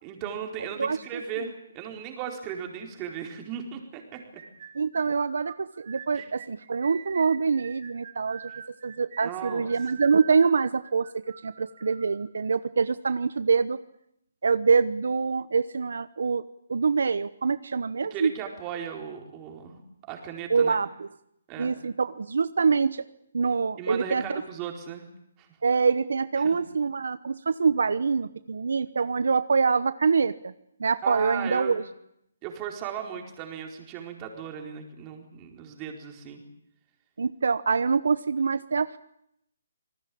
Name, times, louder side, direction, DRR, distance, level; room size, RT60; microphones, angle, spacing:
voice 1, 0.0-4.2 6.1-6.3 9.2-9.7 18.1-19.8 20.1-20.8 21.5-21.8 23.8-25.1 25.4-25.5 26.4-26.6 31.0-31.8 32.4-36.4, right 8 dB, 20° right, 3 dB, 4.4 m, -37 dB
sound 1, 4.1-12.2, right 8 dB, 45° right, 3.5 m, -45 dB
voice 2, 4.7-8.4 8.8-11.1 11.4-13.8 14.4-16.4 16.7-18.3 20.5-21.1 21.6-23.0 23.3-24.4 25.6-30.5 30.8-31.8 37.2-39.0, right 5 dB, 75° right, 15 dB, 1.0 m, -25 dB
27.5 x 19.0 x 8.7 m, 0.77 s
hypercardioid pair, 160°, 0 cm